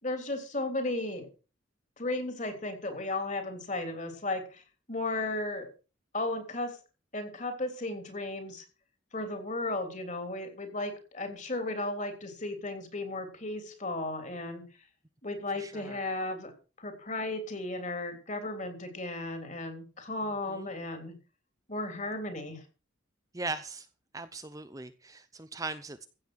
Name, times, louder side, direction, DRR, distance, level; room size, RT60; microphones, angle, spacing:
voice 1, 0.0-1.3 2.0-4.6 4.9-5.7 6.1-6.7 7.1-8.6 9.1-14.6 15.2-16.5 16.8-21.1 21.7-22.6, left 2 dB, 35° left, 6 dB, 3.4 m, -35 dB
voice 2, 15.6-16.0 20.5-20.7 23.3-23.9 24.1-26.1, right 3 dB, 15° right, 11 dB, 0.6 m, -39 dB
15.5 x 7.6 x 6.3 m, 0.35 s
head